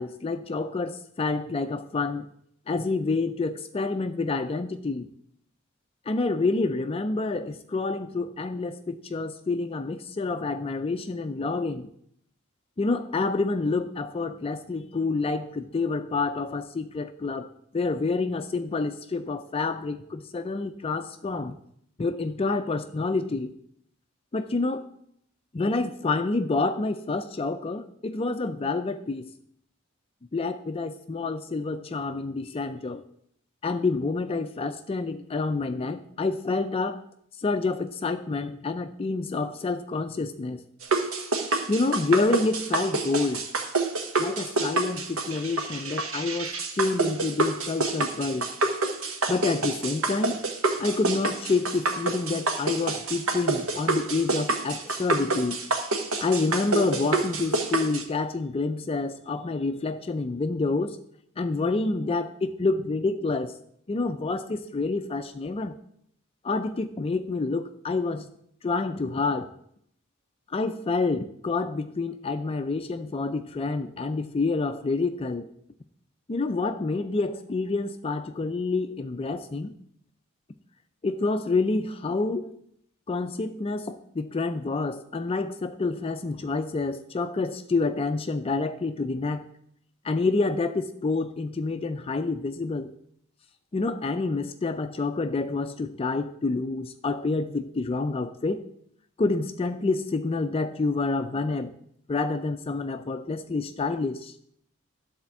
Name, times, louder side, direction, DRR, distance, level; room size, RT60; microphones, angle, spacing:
voice 1, 0.0-2.3 2.7-5.1 6.1-11.9 12.8-17.5 17.7-21.6 22.0-23.5 24.3-24.8 25.5-29.3 30.3-33.0 33.6-37.0 37.4-40.6 41.7-43.5 44.2-48.5 49.3-50.5 50.8-55.6 56.2-61.0 61.4-63.5 63.9-65.8 66.4-68.3 68.6-69.5 70.5-75.5 76.3-79.7 81.0-82.5 83.1-89.5 90.0-92.9 93.7-98.6 99.2-101.7 102.1-104.3, left 3 dB, 30° left, 8 dB, 0.4 m, -28 dB
sound 1, 40.8-58.0, right 3 dB, 85° right, 1.3 m, -28 dB
12.0 x 4.3 x 7.2 m, 0.70 s
head